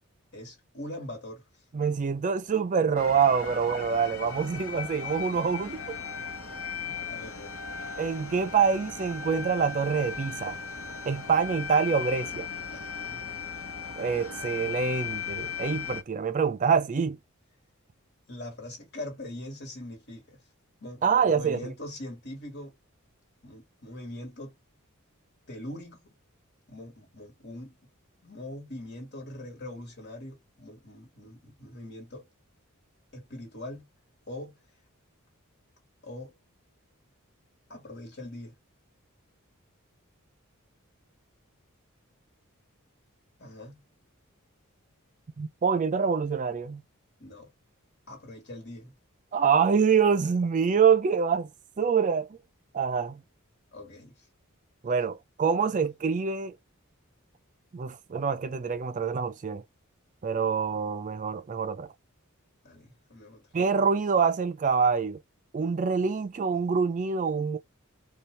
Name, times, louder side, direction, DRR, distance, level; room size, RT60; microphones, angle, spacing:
voice 1, 0.3-1.4 6.8-7.5 12.5-13.2 18.3-20.4 20.8-22.7 23.4-24.5 25.5-26.1 26.7-27.8 28.2-32.3 33.1-33.9 34.3-34.6 36.0-36.3 37.7-38.6 43.4-43.8 47.2-47.5 48.1-48.9 53.7-54.1 62.6-63.4, left 1 dB, 55° left, 1.6 m, -42 dB
voice 2, 1.7-6.0 8.0-10.6 11.1-12.5 14.0-17.2 21.0-21.6 45.4-46.8 49.3-51.5 51.8-52.3 52.7-53.2 54.8-56.5 57.7-59.6 60.2-61.9 63.5-65.2 65.5-67.6, right 6 dB, 35° right, 0.4 m, -25 dB
sound 1, 3.0-16.0, left 6 dB, 75° left, 1.2 m, -37 dB
4.2 x 2.3 x 3.1 m
head